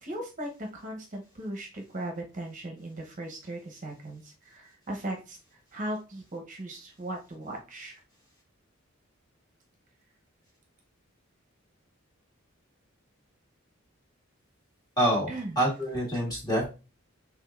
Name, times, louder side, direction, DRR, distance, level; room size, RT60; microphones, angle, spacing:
voice 1, 0.0-8.0 15.3-15.8, right 1 dB, 40° right, 2 dB, 0.8 m, -38 dB
voice 2, 15.0-15.3 15.5-16.7, right 1 dB, 20° left, -4 dB, 1.8 m, -26 dB
5.0 x 3.4 x 2.4 m, 0.31 s
head